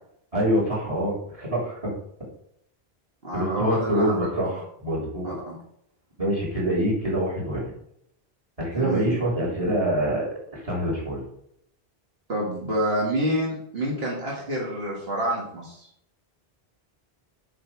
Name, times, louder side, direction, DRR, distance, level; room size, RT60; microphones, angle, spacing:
voice 1, 0.3-1.9 3.3-5.4 6.2-7.6 8.6-10.3 10.5-11.2, right 1 dB, 35° right, -3 dB, 3.4 m, -25 dB
voice 2, 3.2-4.3 5.2-5.5 8.7-9.0 12.3-15.9, equal, 70° right, -3 dB, 2.1 m, -27 dB
7.6 x 6.2 x 4.7 m, 0.73 s
omnidirectional pair, 1.1 m